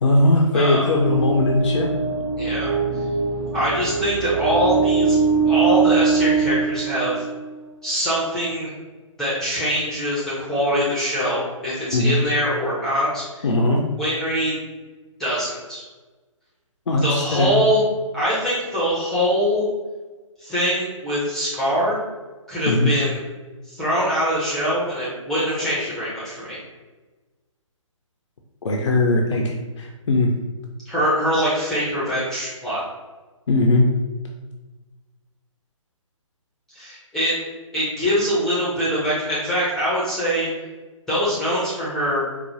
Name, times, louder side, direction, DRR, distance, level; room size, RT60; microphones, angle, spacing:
voice 1, 0.0-1.9 11.9-12.2 13.4-13.8 16.9-17.6 22.7-22.9 28.6-30.3 33.5-33.9, left 2 dB, 65° left, 1 dB, 0.5 m, -19 dB
voice 2, 0.5-0.9 2.4-3.0 3.5-5.2 5.5-7.3 7.8-8.7 9.2-13.5 14.0-14.6 15.2-15.8 17.0-17.8 18.1-19.7 20.4-22.0 22.5-23.2 23.7-26.6 30.8-32.8 36.7-37.4 37.7-40.5 41.1-42.2, equal, 5° left, -9 dB, 0.5 m, -23 dB
sound 1, 0.7-7.6, right 5 dB, 45° right, 0.5 m, -22 dB
4.7 x 2.0 x 2.7 m, 1.3 s
figure-of-eight pair, 135°, 17 cm